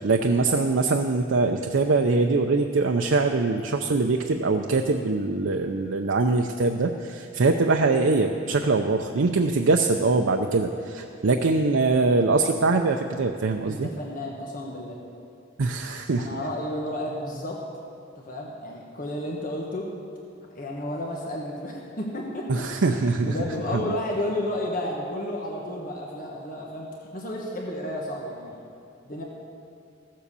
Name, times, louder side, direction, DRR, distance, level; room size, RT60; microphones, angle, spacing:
voice 1, 0.0-13.9 15.6-16.3 22.5-23.4 23.7-23.9, right 3 dB, 80° right, 4 dB, 0.6 m, -23 dB
voice 2, 13.6-15.0 16.2-17.6 18.2-19.9 20.5-22.6 23.2-28.6 29.0-29.2, left 1 dB, 45° left, -2 dB, 1.4 m, -32 dB
15.5 x 7.6 x 6.8 m, 2.5 s
head